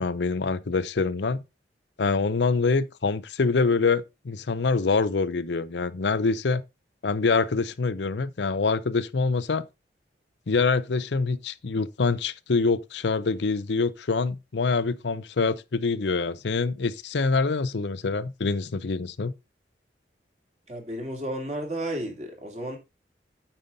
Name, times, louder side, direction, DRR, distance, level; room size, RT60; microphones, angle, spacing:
voice 1, 0.0-1.4 2.0-6.6 7.0-9.6 10.5-19.3, left 4 dB, 75° left, 0.6 m, -25 dB
voice 2, 20.7-22.8, right 1 dB, 40° right, 2.7 m, -32 dB
8.9 x 5.6 x 3.9 m
head